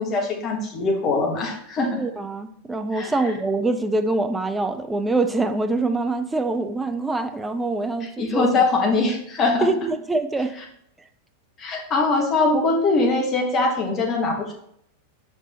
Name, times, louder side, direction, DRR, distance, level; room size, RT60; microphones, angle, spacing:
voice 1, 0.0-2.0 2.9-3.1 8.0-9.7 11.6-14.5, left 3 dB, 30° left, 1.3 m, -22 dB
voice 2, 1.9-8.5 9.6-10.6, right 2 dB, 10° right, 0.5 m, -24 dB
5.3 x 4.6 x 4.1 m
figure-of-eight pair, 90°, 0 cm